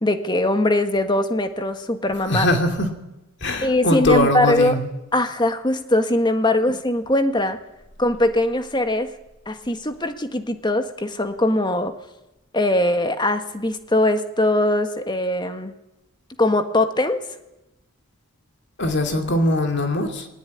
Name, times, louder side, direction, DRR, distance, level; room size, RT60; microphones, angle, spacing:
voice 1, 0.0-2.5 3.6-4.8 5.1-7.6 8.0-9.1 9.5-11.9 12.5-15.7 16.4-17.2, left 1 dB, 20° left, 8 dB, 1.6 m, -21 dB
voice 2, 2.3-2.9 3.4-4.9 18.8-20.3, left 1 dB, 55° left, 5 dB, 2.6 m, -21 dB
20.5 x 19.5 x 9.5 m, 0.94 s
head